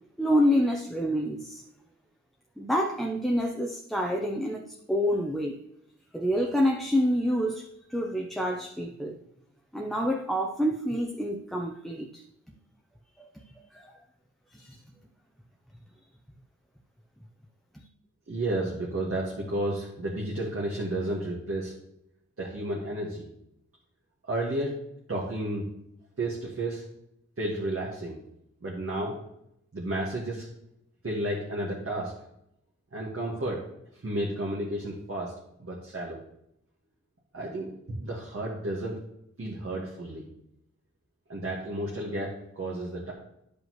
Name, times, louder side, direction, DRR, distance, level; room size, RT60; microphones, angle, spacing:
voice 1, 0.2-1.6 2.6-5.6 6.1-7.6 7.9-9.2 9.7-12.2 13.3-13.4 13.7-13.9 14.5-14.8 17.7-17.8, equal, ahead, 0.6 m, -27 dB
voice 2, 18.3-21.7 22.4-23.3 24.2-24.7 25.1-25.7 26.2-26.8 27.4-28.2 28.6-29.2 29.7-30.5 31.0-32.1 32.9-33.7 33.9-35.3 35.6-36.2 37.3-39.0 39.4-40.2 41.3-43.1, right 1 dB, 50° right, 1.6 m, -32 dB
11.0 x 5.2 x 3.0 m
wide cardioid pair, 100°, 30 cm